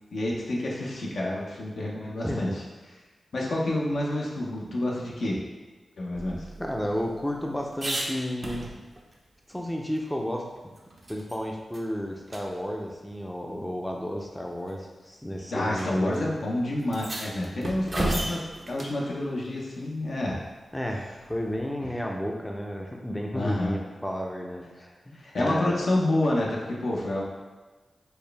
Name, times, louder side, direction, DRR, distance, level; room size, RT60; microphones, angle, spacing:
voice 1, 0.1-2.5 3.3-5.4 6.0-6.5 15.5-18.4 18.7-20.5 23.3-23.8 25.1-27.2, left 1 dB, 75° left, -3 dB, 0.7 m, -28 dB
voice 2, 2.2-2.6 6.6-8.7 9.5-10.7 11.1-16.3 17.4-18.3 20.7-25.8, equal, 10° left, 0 dB, 0.5 m, -32 dB
sound 1, 6.1-9.1 9.5-9.6 10.0-11.4 11.7-11.9 12.3-12.4 13.5-13.6 14.5-14.8 15.8-15.9 16.1-16.2 16.8-19.0 21.3-21.7, right 1 dB, 45° right, 0.6 m, -35 dB
4.4 x 2.2 x 3.3 m, 1.3 s
cardioid pair, 60°, 0 cm